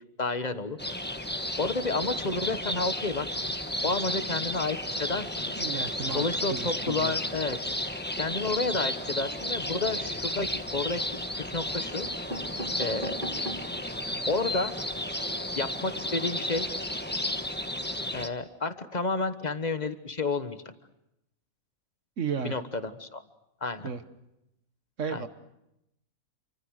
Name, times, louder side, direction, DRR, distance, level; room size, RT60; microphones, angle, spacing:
voice 1, 0.2-0.8 1.6-3.3 3.8-5.6 6.1-7.6 8.2-12.1 12.8-13.2 14.3-14.8 15.6-16.7 18.1-20.6 22.4-23.2 23.6-23.9 25.1-25.3, left 3 dB, 30° left, 10 dB, 1.2 m, -31 dB
sound 1, 0.8-18.3, left 1 dB, 10° left, 1.2 m, -33 dB
voice 2, 5.5-7.1 22.2-22.5 23.8-24.0 25.0-25.3, right 6 dB, 60° right, 10 dB, 1.5 m, -34 dB
sound 2, 10.4-10.9 11.6-11.7 12.0-13.8 14.3-14.4 14.6-14.7 15.0-15.2, right 1 dB, 35° right, 4.2 m, -39 dB
28.5 x 25.0 x 6.5 m, 0.87 s
omnidirectional pair, 1.5 m